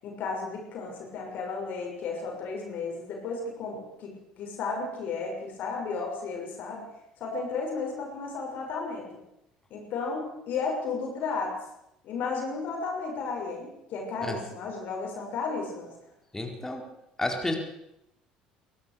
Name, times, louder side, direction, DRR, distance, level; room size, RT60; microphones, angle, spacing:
voice 1, 0.0-4.1 4.4-6.8 7.2-9.1 9.7-11.5 12.0-15.9, left 4 dB, 50° left, 1 dB, 6.4 m, -33 dB
voice 2, 16.3-16.8 17.2-17.6, left 2 dB, 10° left, 3 dB, 4.7 m, -30 dB
22.5 x 17.5 x 6.9 m, 0.84 s
figure-of-eight pair, 60°, 4 cm